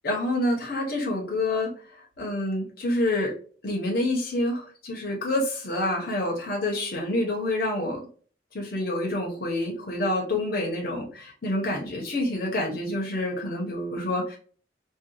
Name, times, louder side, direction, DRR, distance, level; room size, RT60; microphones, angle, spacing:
voice 1, 0.0-1.7 2.2-3.3 3.6-8.0 8.5-14.4, left 1 dB, 55° left, -1 dB, 0.9 m, -27 dB
2.7 x 2.3 x 2.3 m, 0.41 s
head